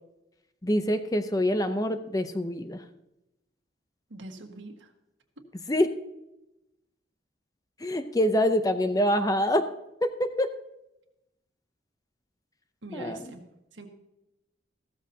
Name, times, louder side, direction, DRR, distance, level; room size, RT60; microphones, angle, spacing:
voice 1, 0.6-2.8 5.7-5.9 7.8-9.7 10.0-10.5 12.9-13.2, equal, 20° left, 9 dB, 0.6 m, -25 dB
voice 2, 4.1-4.9 5.4-5.5 12.8-13.9, right 1 dB, 85° right, 4 dB, 1.6 m, -43 dB
15.0 x 13.0 x 2.8 m, 0.92 s
head